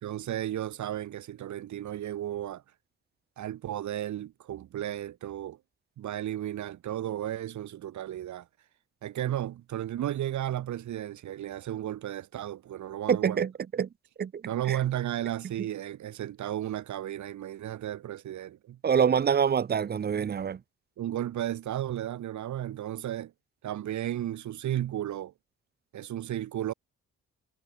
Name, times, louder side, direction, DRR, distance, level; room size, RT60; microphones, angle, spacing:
voice 1, 0.0-2.6 3.4-5.6 6.0-8.5 9.0-13.4 14.5-18.8 21.0-23.3 23.6-25.3 25.9-26.7, right 12 dB, 70° right, 2.4 m, -34 dB
voice 2, 13.1-13.9 14.2-14.3 14.7-14.8 18.8-20.6, right 7 dB, 35° right, 0.7 m, -25 dB
cardioid pair, 90°, 30 cm